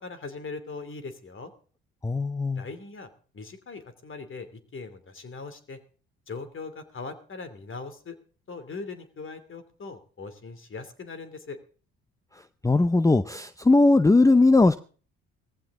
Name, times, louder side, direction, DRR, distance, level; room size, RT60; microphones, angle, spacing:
voice 1, 0.0-1.5 2.5-5.8 6.3-8.2 8.5-11.6, left 4 dB, 40° left, 10 dB, 2.8 m, -40 dB
voice 2, 2.0-2.7 12.3-14.8, left 2 dB, 10° left, 13 dB, 0.7 m, -20 dB
17.5 x 15.0 x 3.7 m, 0.39 s
supercardioid pair, 70°, 30 cm